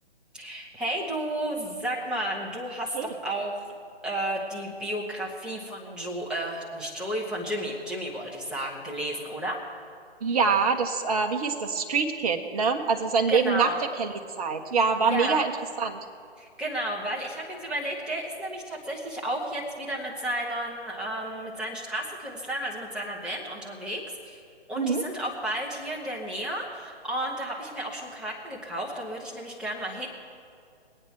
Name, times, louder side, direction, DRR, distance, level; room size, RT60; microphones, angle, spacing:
voice 1, 0.3-3.7 4.0-9.6 13.3-13.8 15.0-15.4 16.4-24.4 24.7-30.1, right 1 dB, ahead, -4 dB, 1.2 m, -32 dB
voice 2, 10.2-13.7 14.0-15.5 15.8-16.0 24.7-25.0, right 5 dB, 35° right, 4 dB, 1.1 m, -25 dB
22.0 x 8.9 x 4.6 m, 2.3 s
figure-of-eight pair, 140°, 33 cm